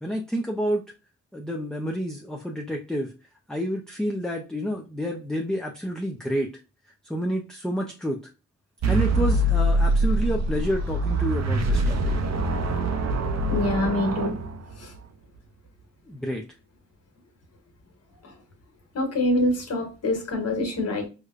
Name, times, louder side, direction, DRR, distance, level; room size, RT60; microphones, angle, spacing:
voice 1, 0.0-0.8 1.3-3.1 3.5-6.5 7.0-8.2 8.9-12.1 16.1-16.4, equal, ahead, 1 dB, 0.5 m, -29 dB
sound 1, 8.8-15.0, right 1 dB, 60° right, 0.6 m, -24 dB
voice 2, 13.5-14.4 14.8-14.9 18.9-21.1, left 1 dB, 55° left, 1 dB, 1.4 m, -25 dB
4.8 x 2.2 x 2.4 m, 0.31 s
cardioid pair, 70°, 31 cm